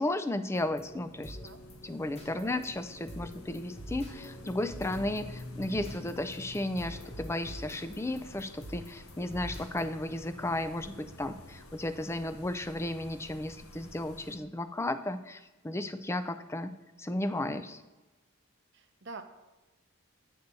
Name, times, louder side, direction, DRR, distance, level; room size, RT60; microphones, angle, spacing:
voice 1, 0.0-1.4 1.8-16.7 17.0-17.8, left 1 dB, 10° left, 11 dB, 0.3 m, -34 dB
sound 1, 0.5-9.9, equal, 30° left, 1.2 m, -46 dB
sound 2, 0.8-14.4, left 2 dB, 80° left, 1.0 m, -49 dB
voice 2, 18.7-19.2, right 3 dB, 50° right, 8 dB, 0.7 m, -47 dB
7.9 x 4.0 x 6.8 m, 1.2 s
head